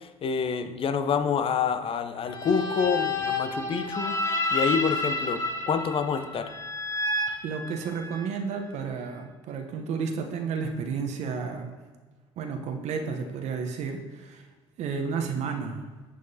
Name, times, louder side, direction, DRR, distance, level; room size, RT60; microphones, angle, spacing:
voice 1, 0.0-4.2 4.5-6.5, left 6 dB, 40° left, 9 dB, 0.7 m, -27 dB
sound 1, 2.3-8.3, left 2 dB, 20° left, 1.3 m, -30 dB
voice 2, 7.4-11.7 12.4-14.5 14.8-15.8, right 5 dB, 55° right, 4 dB, 0.9 m, -32 dB
10.5 x 6.5 x 2.8 m, 1.3 s
figure-of-eight pair, 55°, 14 cm